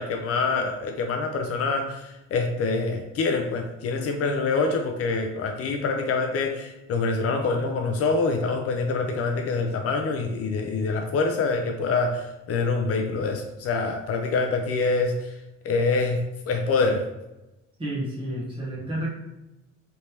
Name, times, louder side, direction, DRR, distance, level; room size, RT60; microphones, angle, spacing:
voice 1, 0.0-15.3 15.6-17.0, left 3 dB, 50° left, 4 dB, 0.4 m, -25 dB
voice 2, 17.8-19.1, right 1 dB, 15° right, -6 dB, 1.0 m, -30 dB
3.3 x 3.1 x 2.8 m, 0.97 s
cardioid pair, 165°, 30 cm